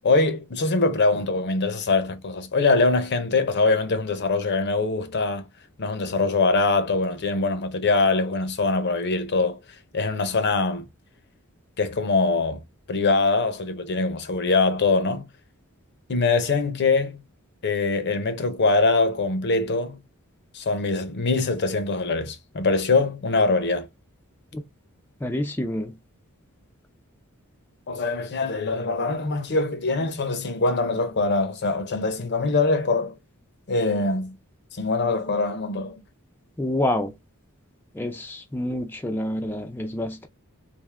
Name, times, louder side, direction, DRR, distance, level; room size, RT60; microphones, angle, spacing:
voice 1, 0.0-5.5 5.8-9.6 9.9-10.9 11.8-12.6 12.9-15.3 16.1-17.2 17.6-20.0 20.5-23.9 27.9-33.2 33.7-34.3 34.7-36.0, left 3 dB, 50° left, 0.6 m, -23 dB
voice 2, 25.2-25.9 36.6-37.1 37.9-40.3, left 1 dB, 10° left, 0.4 m, -27 dB
3.5 x 2.6 x 3.2 m
head